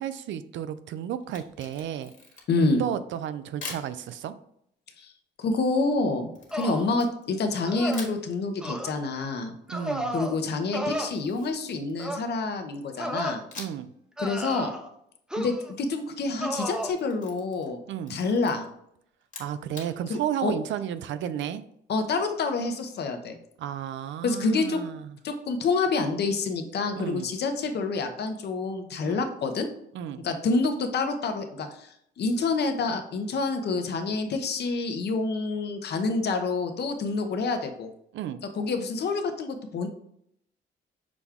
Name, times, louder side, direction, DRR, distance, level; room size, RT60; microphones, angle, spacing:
voice 1, 0.0-2.1 2.8-4.3 9.7-10.2 13.6-13.9 17.9-18.2 19.4-21.6 23.6-25.2 27.0-27.3 29.0-29.2 29.9-30.2 38.1-38.4, right 10 dB, 70° right, 12 dB, 0.4 m, -33 dB
Camera, 1.2-2.7 3.6-3.9 6.3-7.5 7.9-8.2 10.9-12.4 13.5-13.9 14.3-14.4 16.4-17.8 18.0-18.5 19.2-19.9, left 3 dB, 40° left, 1.4 m, -44 dB
voice 2, 2.5-2.8 5.0-5.1 5.4-9.5 10.1-13.4 14.2-14.7 15.4-17.8 18.1-18.7 20.1-20.5 21.9-23.4 24.2-24.8 25.2-29.7 30.2-31.9 32.2-37.9 38.5-39.9, left 3 dB, 55° left, 6 dB, 0.8 m, -27 dB
sound 1, 6.5-6.9 7.7-8.1 8.6-8.9 9.7-10.3 10.7-11.1 12.0-12.3 13.0-13.4 14.2-14.9 15.3-15.7 16.4-16.9, equal, 5° right, 0.6 m, -32 dB
6.0 x 2.3 x 3.5 m, 0.72 s
cardioid pair, 90°, 20 cm